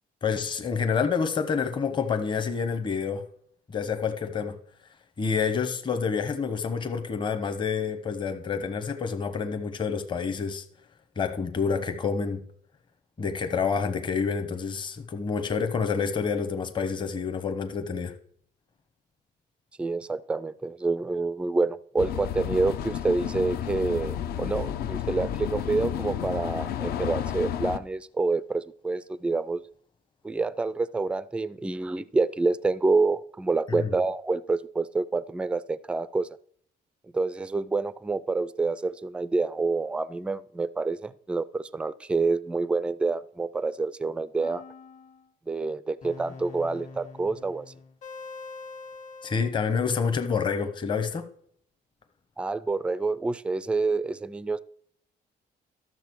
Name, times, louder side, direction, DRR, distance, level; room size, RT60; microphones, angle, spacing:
voice 1, 0.2-3.2 3.7-4.6 5.2-10.6 11.2-12.4 13.2-18.1 33.8-33.9 49.2-51.3, left 5 dB, 30° left, 0.9 m, -28 dB
voice 2, 19.8-29.6 30.2-36.3 37.1-44.6 45.5-47.7 52.4-54.6, right 3 dB, 5° right, 0.3 m, -27 dB
sound 1, 22.0-27.8, left 10 dB, 65° left, 0.7 m, -31 dB
sound 2, 44.4-45.3 46.0-49.5, left 4 dB, 45° left, 1.6 m, -44 dB
12.0 x 6.7 x 4.6 m
cardioid pair, 110°, 17 cm